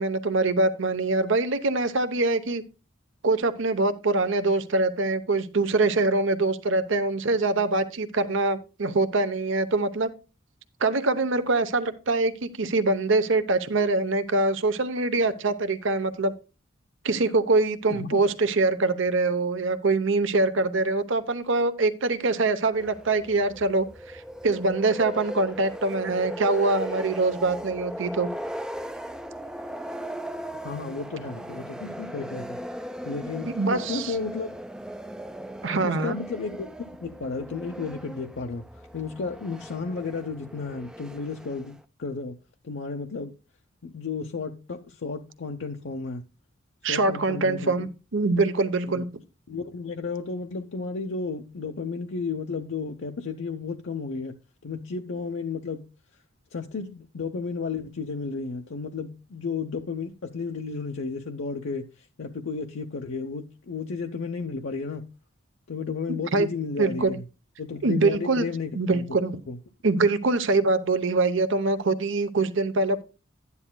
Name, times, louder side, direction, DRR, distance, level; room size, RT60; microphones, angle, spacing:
voice 1, 0.0-2.6 3.2-10.1 10.8-16.3 17.0-28.3 33.5-34.1 35.6-36.2 46.8-49.1 66.1-66.5 66.8-67.2 67.8-68.5 68.7-69.4 69.8-73.0, right 3 dB, 65° right, 0.8 m, -24 dB
sound 1, 22.7-41.8, equal, 5° right, 0.4 m, -38 dB
voice 2, 30.6-32.6 33.0-34.5 35.8-36.7 37.0-38.6 38.9-42.4 42.6-43.3 43.8-46.2 46.9-47.9 48.9-49.0 49.5-54.3 54.6-55.8 56.5-61.9 62.2-65.0 65.7-67.2 67.6-69.1 69.5-69.6, left 4 dB, 65° left, 0.7 m, -33 dB
12.0 x 9.6 x 2.2 m
head